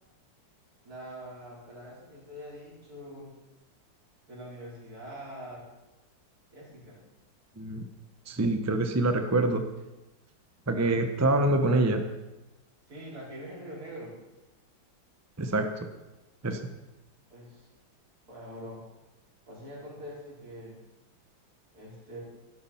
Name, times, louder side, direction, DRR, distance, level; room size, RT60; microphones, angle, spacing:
voice 1, 0.8-3.3 4.3-5.6 6.5-7.0 12.9-14.2 17.3-17.7 18.3-18.8 19.5-20.8 21.7-22.2, equal, 50° right, -4 dB, 4.9 m, -44 dB
voice 2, 8.3-9.6 10.7-12.0 15.4-15.7 16.4-16.6, right 2 dB, 25° right, 7 dB, 0.3 m, -25 dB
12.5 x 11.5 x 5.7 m, 1.0 s
omnidirectional pair, 2.1 m